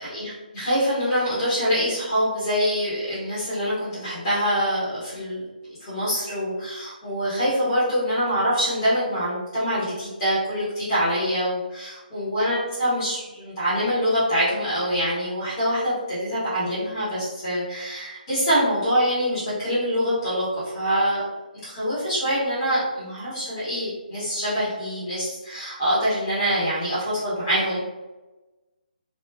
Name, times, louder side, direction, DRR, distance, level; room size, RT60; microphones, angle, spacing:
voice 1, 0.0-5.4 5.8-20.5 20.7-21.2 21.6-27.8, equal, 25° left, -12 dB, 1.2 m, -25 dB
3.1 x 2.6 x 2.3 m, 1.1 s
hypercardioid pair, 170°, 5 cm